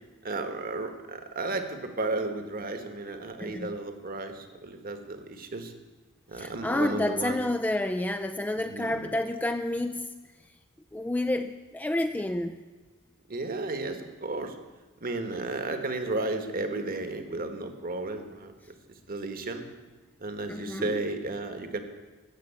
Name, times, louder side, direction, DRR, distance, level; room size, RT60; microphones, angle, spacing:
voice 1, 0.2-5.7 6.3-7.4 8.5-9.0 13.3-14.6 15.0-18.5 19.1-19.7 20.2-21.8, right 2 dB, 45° right, 7 dB, 1.3 m, -33 dB
voice 2, 3.4-3.7 6.3-10.1 10.9-12.6 20.5-21.0, left 1 dB, 10° left, 9 dB, 0.3 m, -29 dB
13.5 x 7.6 x 8.6 m, 1.3 s
head